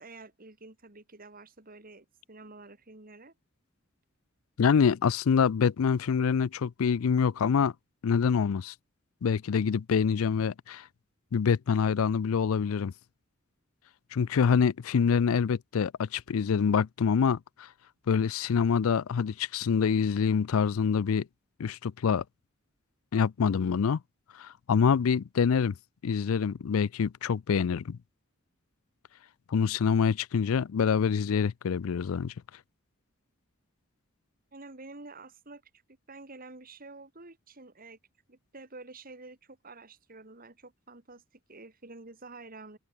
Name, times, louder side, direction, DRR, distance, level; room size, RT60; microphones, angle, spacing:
voice 1, 0.0-3.3 34.5-35.6 36.1-38.0 38.3-42.8, right 3 dB, 45° right, 2.9 m, -49 dB
voice 2, 4.6-7.7 8.0-8.7 9.2-10.9 11.3-12.9 14.1-17.7 18.1-21.3 21.6-22.2 23.1-24.0 24.4-25.8 26.0-28.0 29.5-32.3, left 6 dB, 80° left, 0.4 m, -26 dB
head